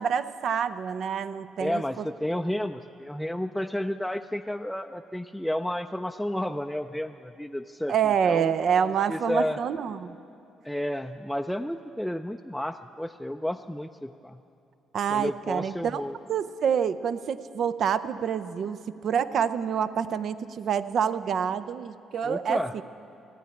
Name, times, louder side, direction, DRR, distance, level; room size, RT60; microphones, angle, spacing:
voice 1, 0.0-2.1 7.9-10.2 14.9-16.0 16.3-22.6, right 7 dB, 65° right, 13 dB, 0.5 m, -27 dB
voice 2, 1.6-7.9 8.2-8.5 9.1-9.6 10.6-14.4 15.1-16.1 22.2-22.7, left 1 dB, 5° left, 5 dB, 0.4 m, -31 dB
14.5 x 9.2 x 8.6 m, 2.6 s
supercardioid pair, 60°, 0 cm